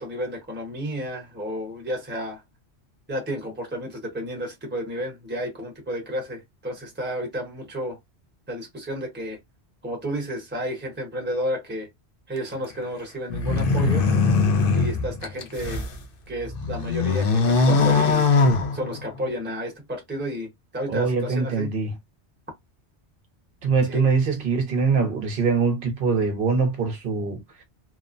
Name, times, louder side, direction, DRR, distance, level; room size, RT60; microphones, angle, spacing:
voice 1, 0.0-2.4 3.1-8.0 8.5-9.4 9.8-11.9 12.3-14.1 14.7-15.8 16.3-18.3 18.7-21.7 23.9-24.0, equal, 10° right, 0.9 m, -31 dB
sound 1, 13.3-15.9 16.4-19.2, left 4 dB, 60° left, 0.8 m, -21 dB
voice 2, 20.9-21.9 23.6-27.4, right 4 dB, 55° right, 0.8 m, -23 dB
2.9 x 2.0 x 2.5 m
omnidirectional pair, 1.2 m